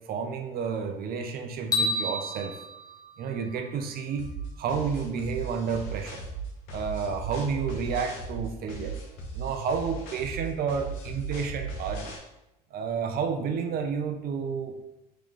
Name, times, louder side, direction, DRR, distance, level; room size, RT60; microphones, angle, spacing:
voice 1, 0.0-2.6 3.2-4.3 4.6-6.2 6.7-9.0 9.3-12.1 12.7-14.8, right 6 dB, 50° right, 6 dB, 0.7 m, -31 dB
sound 1, 1.7-4.0, left 2 dB, 20° left, 1.0 m, -31 dB
sound 2, 4.2-12.2, right 4 dB, 70° left, 1.1 m, -37 dB
3.8 x 3.3 x 3.7 m, 0.91 s
hypercardioid pair, 70°, 20 cm